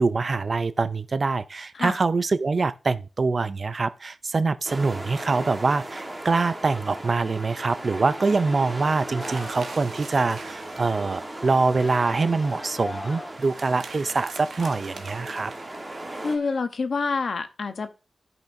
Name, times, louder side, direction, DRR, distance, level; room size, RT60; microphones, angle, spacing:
voice 1, 0.0-15.5, right 3 dB, 40° right, 0.4 m, -24 dB
sound 1, 4.6-16.4, right 1 dB, 20° right, 1.4 m, -37 dB
Singing, 9.0-9.7 10.0-14.8, left 1 dB, 15° left, 1.4 m, -41 dB
sound 2, 9.2-11.2 13.3-16.6, right 4 dB, 75° right, 1.0 m, -44 dB
voice 2, 16.2-17.9, left 4 dB, 55° left, 0.9 m, -27 dB
13.5 x 5.6 x 2.6 m
wide cardioid pair, 145°, 0 cm